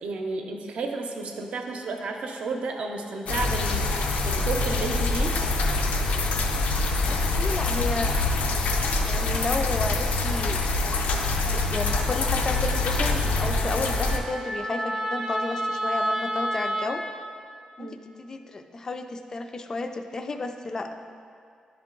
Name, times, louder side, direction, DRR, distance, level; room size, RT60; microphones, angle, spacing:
voice 1, 0.0-5.4 17.8-18.1, right 3 dB, 70° right, 3 dB, 0.6 m, -32 dB
sound 1, 3.3-14.2, left 3 dB, 90° left, 0.5 m, -25 dB
voice 2, 7.0-8.2 9.0-10.6 11.4-17.0 17.8-20.9, left 3 dB, 25° left, 6 dB, 0.3 m, -32 dB
Wind instrument woodwind instrument, 11.7-16.9, equal, 25° right, 0.6 m, -31 dB
10.5 x 3.6 x 3.7 m, 2.4 s
wide cardioid pair, 175°, 2 cm